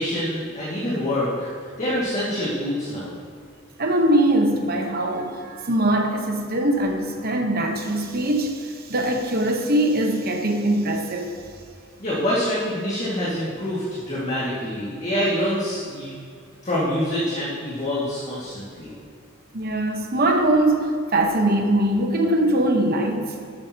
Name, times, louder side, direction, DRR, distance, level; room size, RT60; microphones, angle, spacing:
voice 1, 0.0-1.5 1.8-3.1 12.0-16.1 16.6-18.9, left 1 dB, 35° left, -9 dB, 1.9 m, -26 dB
voice 2, 3.8-11.3 19.5-23.3, right 1 dB, 45° right, 3 dB, 1.0 m, -22 dB
12.0 x 8.8 x 2.9 m, 2.2 s
head